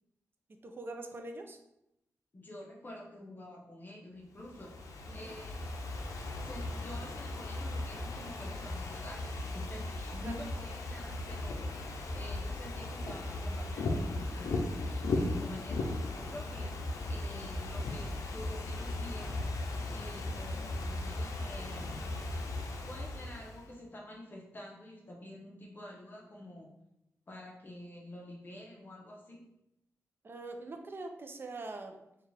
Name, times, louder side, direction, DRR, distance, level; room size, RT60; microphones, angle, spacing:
voice 1, 0.6-1.6 5.1-5.3 10.1-10.5 30.2-32.0, right 2 dB, 40° right, 4 dB, 0.5 m, -43 dB
voice 2, 2.3-4.7 5.1-5.6 6.4-11.8 12.1-22.0 22.8-26.7 27.3-29.4, left 1 dB, 35° left, -2 dB, 0.8 m, -48 dB
Ocean / Fireworks, 4.4-23.7, left 2 dB, 80° left, 0.5 m, -37 dB
4.6 x 2.4 x 3.4 m, 0.84 s
wide cardioid pair, 90°, 6 cm